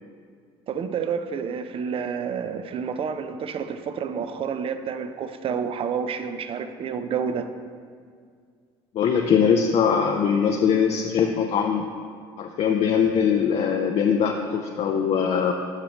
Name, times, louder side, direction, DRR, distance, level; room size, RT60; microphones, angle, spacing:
voice 1, 0.7-7.5, right 6 dB, 45° right, 10 dB, 0.5 m, -29 dB
voice 2, 8.9-11.9 12.4-15.5, left 7 dB, 50° left, 3 dB, 0.5 m, -21 dB
12.0 x 4.9 x 3.0 m, 2.1 s
hypercardioid pair, 70°, 13 cm